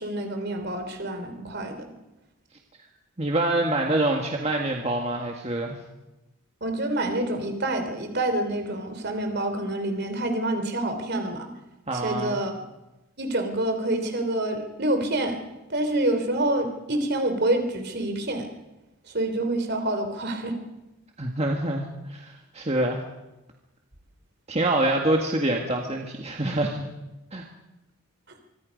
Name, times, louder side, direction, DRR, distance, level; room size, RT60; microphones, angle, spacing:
voice 1, 0.0-1.9 6.6-11.5 11.9-12.5 13.2-15.4 15.7-18.5 19.1-20.6, right 1 dB, 45° right, 6 dB, 3.3 m, -27 dB
voice 2, 3.2-5.7 11.9-12.4 21.2-23.0 24.5-26.9 27.3-27.4, right 1 dB, 30° right, 1 dB, 1.8 m, -26 dB
25.0 x 23.5 x 5.3 m, 1.0 s
head